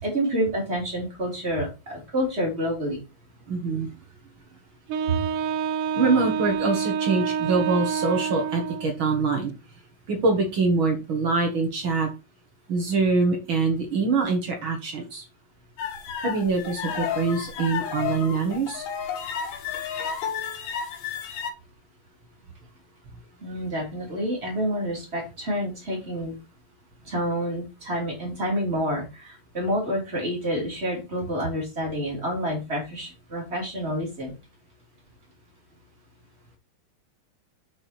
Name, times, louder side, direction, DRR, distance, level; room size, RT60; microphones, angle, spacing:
voice 1, 0.0-3.0 23.4-26.4 27.0-34.3, equal, 20° right, -1 dB, 2.8 m, -28 dB
voice 2, 3.5-3.9 5.1-5.2 5.9-9.5 10.1-12.1 12.7-15.2 16.2-18.8, right 4 dB, 55° right, 3 dB, 1.5 m, -24 dB
Wind instrument woodwind instrument, 4.9-9.0, right 7 dB, 80° right, 1.8 m, -28 dB
sound 1, 15.8-21.5, left 7 dB, 85° left, 3.3 m, -32 dB
6.6 x 6.1 x 4.3 m, 0.27 s
omnidirectional pair, 4.3 m